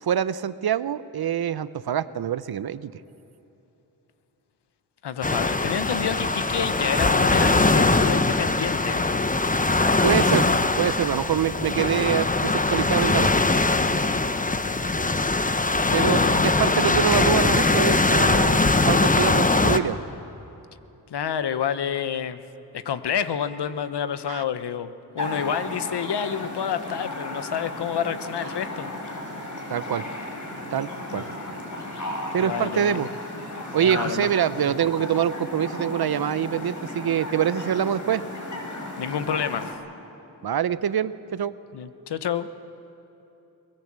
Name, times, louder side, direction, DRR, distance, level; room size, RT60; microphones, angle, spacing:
voice 1, 0.0-2.9 10.0-10.5 10.8-13.3 15.9-20.0 24.3-24.4 29.7-30.1 30.7-31.3 32.3-33.1 33.7-38.2 40.4-41.5, right 9 dB, 60° right, 15 dB, 0.8 m, -25 dB
voice 2, 5.0-9.0 15.9-16.5 21.1-22.4 22.7-28.9 31.1-31.3 32.4-33.0 33.8-34.3 34.6-34.7 39.0-39.7 41.7-42.5, left 8 dB, 70° left, 12 dB, 1.1 m, -29 dB
sound 1, 5.2-19.8, left 3 dB, 20° left, 1.1 m, -21 dB
sound 2, 25.2-39.7, left 1 dB, 45° left, 4.9 m, -35 dB
22.5 x 20.5 x 7.6 m, 3.0 s
cardioid pair, 55°, 42 cm